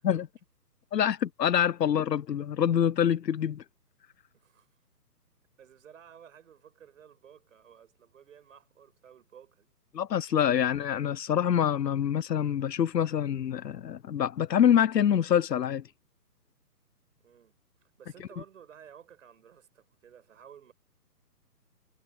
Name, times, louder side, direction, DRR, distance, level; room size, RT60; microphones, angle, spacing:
voice 1, 0.9-3.6 9.9-15.8, left 9 dB, 85° left, 0.7 m, -26 dB
voice 2, 4.3-4.7 5.6-9.7 10.3-10.4 17.2-17.6 17.8-20.7, right 8 dB, 50° right, 6.9 m, -54 dB
hypercardioid pair, 150°, 48 cm